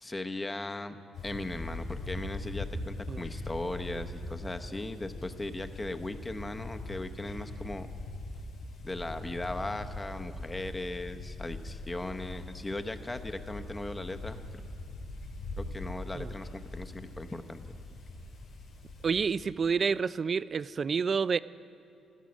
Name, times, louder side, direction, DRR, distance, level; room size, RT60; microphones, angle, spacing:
voice 1, 0.0-1.0 1.2-7.9 8.8-14.4 15.6-17.6, left 2 dB, 20° left, 8 dB, 0.9 m, -38 dB
sound 1, 1.1-19.4, left 2 dB, 70° left, 4.6 m, -41 dB
voice 2, 19.0-21.4, right 5 dB, 45° right, 18 dB, 0.3 m, -29 dB
16.5 x 13.5 x 6.3 m, 2.7 s
cardioid pair, 90°, 0 cm